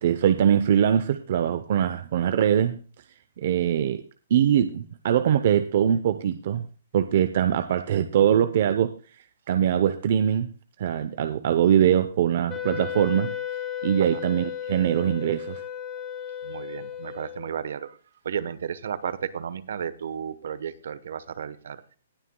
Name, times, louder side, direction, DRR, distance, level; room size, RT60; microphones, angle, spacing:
voice 1, 0.0-2.8 3.4-4.0 4.3-6.7 6.9-8.9 9.5-10.5 10.8-13.3 13.8-15.6, right 9 dB, 45° right, 9 dB, 0.7 m, -22 dB
Wind instrument woodwind instrument, 12.5-17.7, left 9 dB, 15° left, 0.8 m, -34 dB
voice 2, 16.4-18.0 18.2-21.8, right 8 dB, 65° right, 14 dB, 1.0 m, -33 dB
19.0 x 9.0 x 2.2 m, 0.38 s
hypercardioid pair, 170°, 0 cm